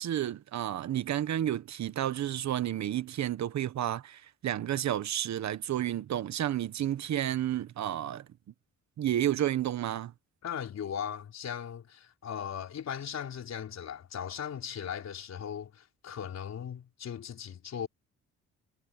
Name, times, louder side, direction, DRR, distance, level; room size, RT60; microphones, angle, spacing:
voice 1, 0.0-8.2 9.0-10.1, right 11 dB, 65° right, 1.4 m, -31 dB
voice 2, 10.4-17.9, left 8 dB, 60° left, 4.2 m, -38 dB
cardioid pair, 90°, 30 cm